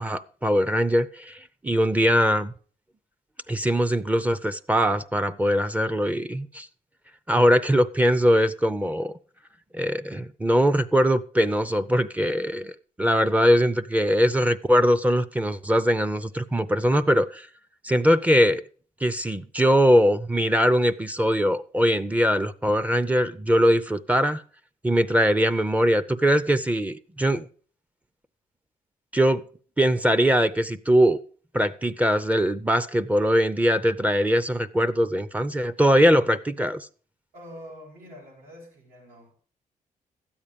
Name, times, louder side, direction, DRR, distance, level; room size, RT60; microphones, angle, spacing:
voice 1, 0.0-2.5 3.5-6.7 7.3-9.1 9.7-12.7 13.0-17.5 17.8-18.6 19.0-24.4 24.8-27.5 29.1-29.4 29.8-31.2 31.5-36.9, equal, 10° right, 0.5 m, -21 dB
voice 2, 37.3-39.3, equal, 85° right, 7.7 m, -45 dB
13.0 x 8.7 x 5.2 m
cardioid pair, 135°, 14 cm